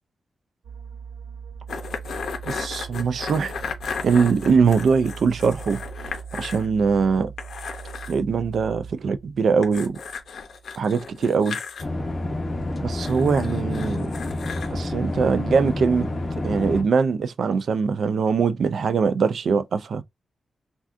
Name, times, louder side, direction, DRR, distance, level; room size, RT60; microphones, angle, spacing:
sound 1, 0.6-12.0 12.3-12.6, right 6 dB, 90° right, 1.0 m, -41 dB
sound 2, 1.7-6.7 7.0-7.1 7.4-8.2 9.6-11.8 13.0-14.7, left 5 dB, 80° left, 0.6 m, -35 dB
voice 1, 2.5-3.5 3.8-5.8 6.3-7.3 8.1-10.0 10.8-11.6 12.8-14.1 14.7-16.1 16.4-20.0, right 5 dB, 70° right, 0.3 m, -22 dB
sound 3, 11.8-16.8, left 2 dB, 35° left, 0.8 m, -28 dB
3.5 x 2.3 x 2.5 m
cardioid pair, 95°, 0 cm